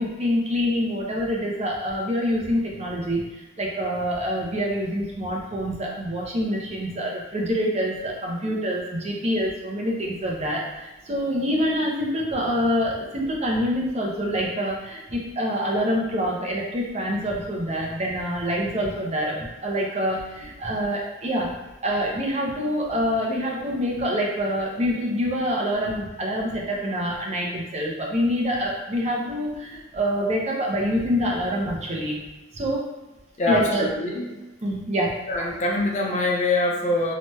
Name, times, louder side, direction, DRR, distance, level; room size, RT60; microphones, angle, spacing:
voice 1, 0.0-21.5 21.8-32.2 32.5-32.9 33.5-33.9 34.6-35.2, equal, 35° right, -2 dB, 0.6 m, -26 dB
voice 2, 33.4-34.3 35.3-37.1, left 2 dB, 35° left, -2 dB, 0.6 m, -24 dB
2.9 x 2.2 x 3.1 m, 1.1 s
head